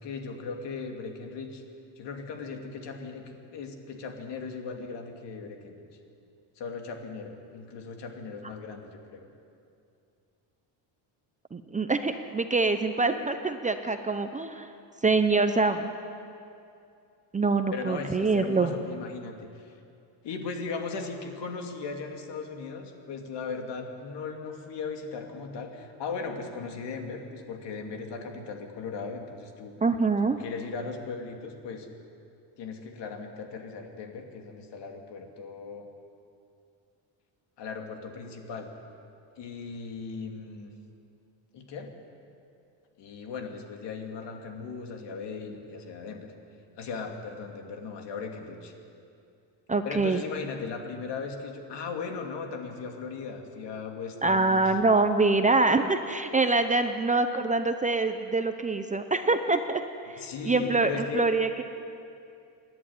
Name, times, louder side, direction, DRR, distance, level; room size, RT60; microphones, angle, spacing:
voice 1, 0.0-1.6 2.0-5.8 6.6-9.2 17.7-19.7 20.2-29.7 30.4-31.9 32.6-35.9 37.6-38.7 39.4-40.7 41.5-41.9 43.0-46.3 46.7-48.7 49.8-54.8 60.2-61.3, left 4 dB, 60° left, 3 dB, 2.8 m, -37 dB
voice 2, 11.5-14.7 15.0-15.9 17.3-18.7 29.8-30.4 49.7-50.2 54.2-59.8 60.1-61.6, right 3 dB, 15° right, 7 dB, 0.7 m, -25 dB
27.0 x 11.0 x 9.8 m, 2.5 s
cardioid pair, 145°, 46 cm